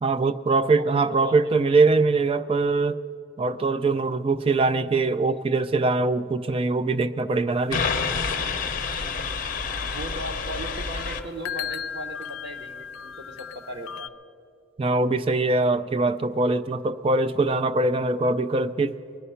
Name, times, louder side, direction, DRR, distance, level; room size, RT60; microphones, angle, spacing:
voice 1, 0.0-3.0 3.4-7.8 14.8-19.0, right 3 dB, 30° right, 12 dB, 0.3 m, -22 dB
voice 2, 0.7-1.4 9.9-14.1, equal, 55° right, 3 dB, 1.1 m, -37 dB
sound 1, 7.5-14.1, left 8 dB, 85° left, 0.4 m, -38 dB
sound 2, 7.7-11.2, left 5 dB, 40° left, 0.7 m, -28 dB
20.0 x 11.0 x 5.7 m, 2.5 s
head